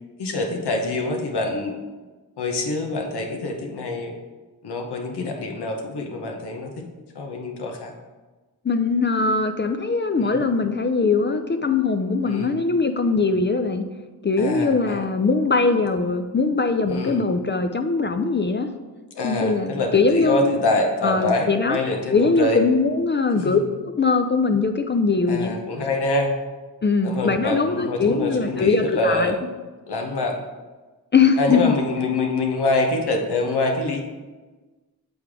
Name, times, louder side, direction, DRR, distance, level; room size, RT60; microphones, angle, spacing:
voice 1, 0.2-1.7 2.4-4.2 4.6-6.9 7.1-7.9 10.2-10.4 12.2-12.5 14.4-15.0 16.9-17.2 19.1-22.6 23.3-23.6 25.3-26.3 27.0-29.4 29.9-30.4 31.4-34.0, left 2 dB, 80° left, 1 dB, 0.9 m, -25 dB
voice 2, 8.6-13.8 14.2-18.7 19.2-20.6 21.0-21.8 22.1-25.6 26.8-29.3 31.1-31.7, left 4 dB, 30° left, 7 dB, 0.4 m, -21 dB
7.8 x 3.4 x 3.6 m, 1.3 s
cardioid pair, 45°, 40 cm